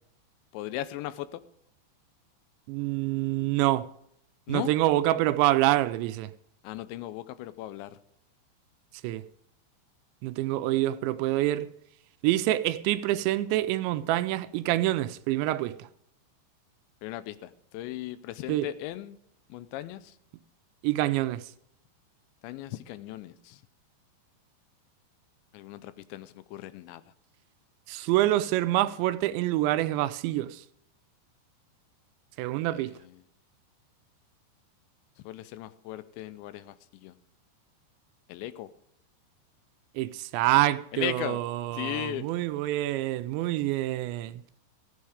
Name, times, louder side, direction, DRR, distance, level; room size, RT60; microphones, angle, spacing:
voice 1, 0.5-1.4 4.5-4.7 6.6-8.0 17.0-19.2 19.5-20.2 22.4-23.6 25.5-27.0 32.7-33.2 35.3-37.1 38.3-38.7 40.9-41.4 41.7-42.3, left 14 dB, 85° left, 3.0 m, -37 dB
voice 2, 2.7-3.9 4.5-6.3 9.0-9.2 10.2-11.7 12.2-15.9 18.5-18.7 20.8-21.4 27.9-30.6 32.4-32.9 40.0-44.4, right 15 dB, 85° right, 2.8 m, -26 dB
15.0 x 8.6 x 5.0 m
omnidirectional pair, 5.2 m